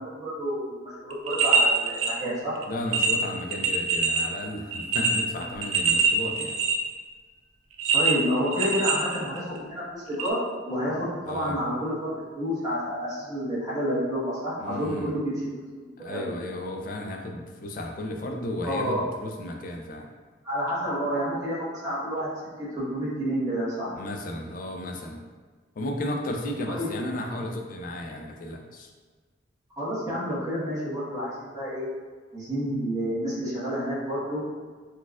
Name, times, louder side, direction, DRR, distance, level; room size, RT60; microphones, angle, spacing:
voice 1, 0.0-2.5 5.4-5.5 7.9-10.4 10.6-16.3 18.6-19.0 20.4-22.3 22.6-23.9 26.7-27.0 29.8-31.9 32.3-34.4, equal, 20° right, -11 dB, 1.1 m, -29 dB
sound 1, 1.1-2.1 2.6-2.7 2.9-4.3 4.7-6.9 7.8-9.6 10.2-10.3, right 4 dB, 85° right, 0.4 m, -24 dB
voice 2, 2.7-6.6 11.3-11.6 14.6-15.1 16.0-20.1 23.9-25.2 25.8-28.9, left 1 dB, 45° left, 2 dB, 0.3 m, -34 dB
4.0 x 2.3 x 2.3 m, 1.5 s
head